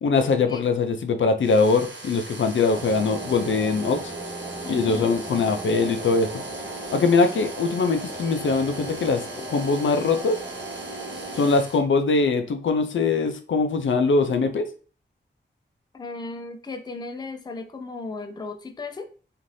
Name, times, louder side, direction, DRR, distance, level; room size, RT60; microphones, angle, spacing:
voice 1, 0.0-4.1 4.7-6.4 6.9-9.2 9.5-10.4 11.4-14.6, left 4 dB, 85° left, 7 dB, 0.4 m, -22 dB
sound 1, 1.4-11.8, right 2 dB, 75° right, 1.1 m, -40 dB
sound 2, 2.7-11.5, right 2 dB, 35° right, 0.8 m, -37 dB
voice 2, 4.6-5.2 15.9-19.1, left 3 dB, 20° left, 6 dB, 0.3 m, -35 dB
2.6 x 2.5 x 3.1 m, 0.38 s
wide cardioid pair, 110°, 19 cm